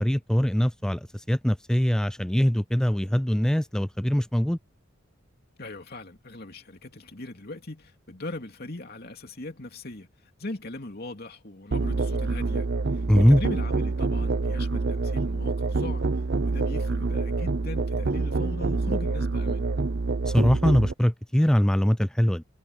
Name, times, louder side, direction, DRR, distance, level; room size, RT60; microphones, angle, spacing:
voice 1, 0.0-4.6 13.1-13.4 20.3-22.4, equal, 5° left, 0.4 m, -22 dB
voice 2, 5.6-12.7 12.9-19.7, left 2 dB, 50° left, 2.9 m, -39 dB
Musical instrument, 11.7-20.9, right 3 dB, 55° right, 0.7 m, -26 dB
head